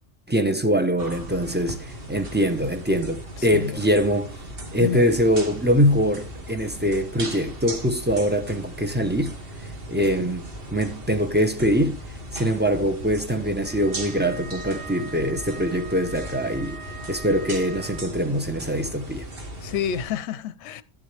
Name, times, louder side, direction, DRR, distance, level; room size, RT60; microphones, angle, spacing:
voice 1, 0.3-4.3 4.7-9.3 9.6-12.0 12.3-16.8 17.1-19.3, equal, 10° right, 0.7 m, -23 dB
sound 1, 1.0-20.1, right 1 dB, 45° right, 1.9 m, -37 dB
voice 2, 3.4-4.0 4.8-5.1 19.6-20.8, left 8 dB, 65° left, 0.9 m, -29 dB
Wind instrument woodwind instrument, 13.6-18.3, right 4 dB, 65° right, 1.9 m, -42 dB
11.0 x 9.3 x 3.3 m
omnidirectional pair, 1.4 m